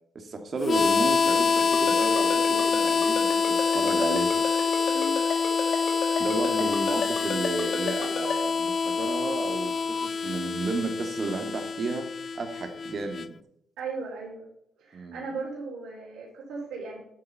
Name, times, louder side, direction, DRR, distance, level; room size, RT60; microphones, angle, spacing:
voice 1, 0.1-4.4 6.2-12.1 12.3-13.3 14.9-15.3, right 3 dB, 45° right, 5 dB, 2.3 m, -32 dB
Harmonica, 0.6-13.3, left 5 dB, 40° left, 0.3 m, -26 dB
Ringtone, 1.6-8.3, left 7 dB, 65° left, 3.8 m, -32 dB
voice 2, 4.9-5.2 13.8-14.4 14.8-17.0, right 3 dB, 80° right, -6 dB, 4.2 m, -37 dB
11.5 x 8.1 x 5.7 m, 0.75 s
cardioid pair, 90°, 0 cm